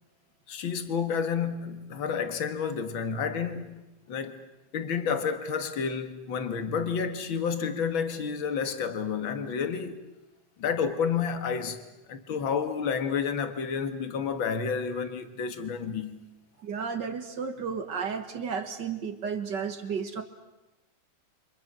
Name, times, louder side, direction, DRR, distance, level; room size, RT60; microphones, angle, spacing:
voice 1, 0.5-3.8 4.1-4.4 4.7-10.0 10.6-11.8 12.1-16.2, left 6 dB, 45° left, 2.2 m, -30 dB
voice 2, 16.6-20.2, right 6 dB, 45° right, 1.7 m, -33 dB
30.0 x 26.0 x 6.2 m
omnidirectional pair, 3.4 m